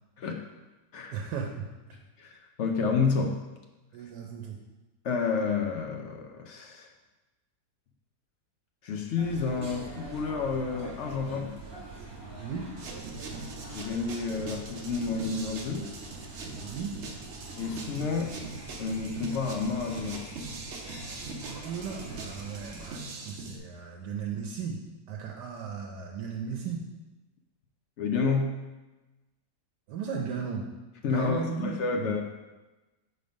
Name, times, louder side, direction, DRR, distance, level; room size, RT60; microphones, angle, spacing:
voice 1, 1.1-1.7 3.9-4.6 12.4-12.7 16.6-17.0 21.4-24.8 25.1-26.9 29.9-30.7 31.0-32.2, right 6 dB, 85° right, 0 dB, 1.3 m, -36 dB
voice 2, 2.2-3.4 5.0-6.9 8.8-11.5 13.7-15.9 17.6-18.3 18.8-20.2 28.0-28.5 31.0-32.2, left 5 dB, 65° left, 3 dB, 0.7 m, -30 dB
sound 1, 9.2-23.0, right 3 dB, 35° right, 2.1 m, -44 dB
sound 2, 12.8-23.6, right 3 dB, 55° right, 0.9 m, -42 dB
5.2 x 4.2 x 5.1 m, 1.1 s
omnidirectional pair, 1.8 m